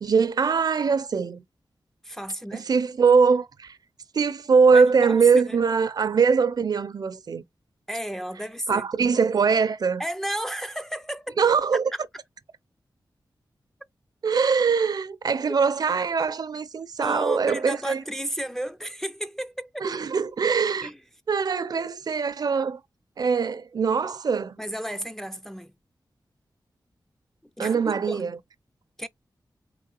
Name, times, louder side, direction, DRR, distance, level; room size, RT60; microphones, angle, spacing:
voice 1, 0.0-1.4 2.5-3.8 4.1-7.4 8.7-10.0 11.4-11.9 14.2-18.0 19.8-20.9 21.3-22.8 23.2-24.6 27.6-28.4, right 5 dB, 60° right, 0.5 m, -22 dB
voice 2, 2.0-2.6 4.7-5.6 7.9-8.9 10.0-11.4 11.9-12.0 17.0-19.9 20.8-21.0 24.6-25.7 27.6-28.3 29.0-29.1, equal, 5° left, 0.3 m, -33 dB
3.8 x 3.2 x 2.3 m
wide cardioid pair, 110°, 8 cm